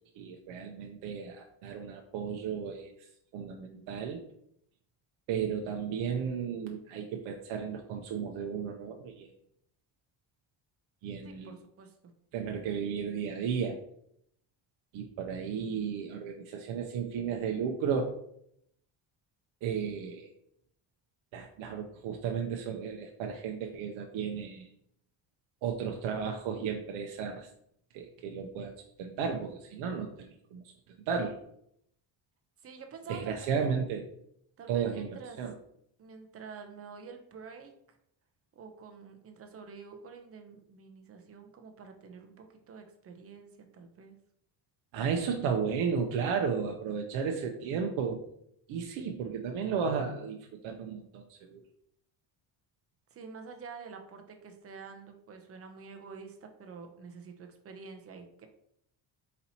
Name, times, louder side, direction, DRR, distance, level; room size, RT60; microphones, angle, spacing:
voice 1, 0.1-2.9 3.3-4.2 5.3-9.3 11.0-11.5 12.3-13.8 14.9-18.1 19.6-20.3 21.3-24.7 25.6-27.5 27.9-28.7 29.0-30.6 31.1-31.4 33.1-34.1 34.7-35.1 35.4-35.5 44.9-48.2 48.7-51.6, right 6 dB, 80° right, 2 dB, 0.6 m, -34 dB
voice 2, 11.2-12.1 32.6-33.5 34.6-35.4 36.0-38.0 38.6-44.2 53.1-58.5, right 5 dB, 30° right, 5 dB, 0.5 m, -48 dB
4.1 x 2.8 x 4.0 m, 0.72 s
cardioid pair, 155°, 47 cm